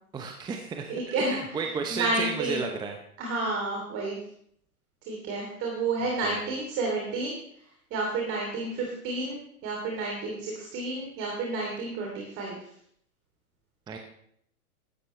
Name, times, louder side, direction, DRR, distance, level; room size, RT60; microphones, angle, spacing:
voice 1, 0.1-3.0 6.0-6.4 13.9-14.0, right 5 dB, 10° right, 3 dB, 0.7 m, -33 dB
voice 2, 0.9-1.4 1.9-2.6 3.2-4.2 5.1-7.4 7.9-12.6, right 2 dB, 30° right, -1 dB, 3.1 m, -30 dB
15.5 x 12.0 x 3.2 m, 0.68 s
hypercardioid pair, 115°, 46 cm